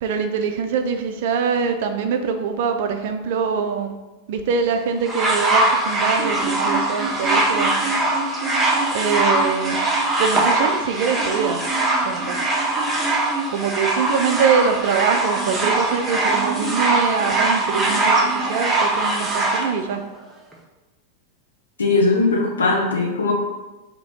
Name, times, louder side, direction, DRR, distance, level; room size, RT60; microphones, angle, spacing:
voice 1, 0.0-4.0 4.3-7.8 8.9-9.8 10.2-11.6 12.0-12.5 13.5-20.0, right 6 dB, 55° right, 6 dB, 0.4 m, -23 dB
sound 1, 5.0-19.6 20.5-20.6, right 2 dB, 10° right, 0.8 m, -21 dB
voice 2, 21.8-23.3, left 3 dB, 70° left, -1 dB, 0.8 m, -19 dB
3.1 x 2.8 x 4.2 m, 1.1 s
figure-of-eight pair, 90°, 0 cm